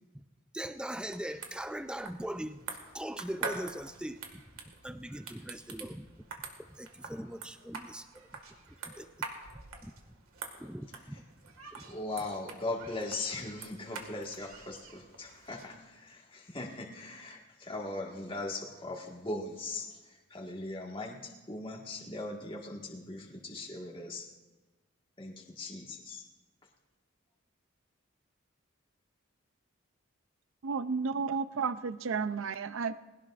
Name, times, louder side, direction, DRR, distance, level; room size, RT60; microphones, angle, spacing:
voice 1, 0.5-2.7 2.9-4.4 4.8-6.1 6.7-8.3 8.8-9.1 9.5-9.9 10.6-11.2 11.7-12.0, right 1 dB, 5° right, 10 dB, 0.4 m, -41 dB
sound 1, 0.8-15.8, right 4 dB, 85° right, 1.9 m, -46 dB
voice 2, 11.8-19.9 20.3-21.2 21.5-24.3 25.2-26.2, left 2 dB, 25° left, 0 dB, 1.7 m, -39 dB
voice 3, 30.6-32.9, right 5 dB, 70° right, 13 dB, 0.5 m, -32 dB
20.5 x 17.0 x 2.5 m, 1.2 s
head